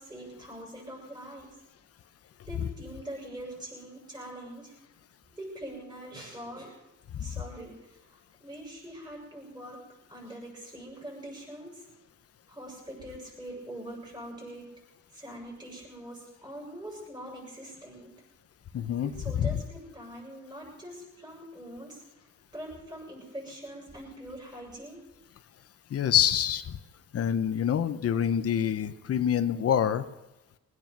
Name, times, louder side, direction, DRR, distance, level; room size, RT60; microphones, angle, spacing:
voice 1, 0.0-1.5 2.4-4.7 5.3-6.8 7.2-9.8 10.1-11.8 12.5-14.7 15.1-18.1 19.0-22.0 22.5-25.0, right 1 dB, 15° right, -3 dB, 7.0 m, -43 dB
voice 2, 18.7-19.6 25.9-26.8 27.1-30.1, left 9 dB, 50° left, 10 dB, 0.9 m, -26 dB
21.5 x 9.4 x 6.0 m, 1.0 s
cardioid pair, 90°, 30 cm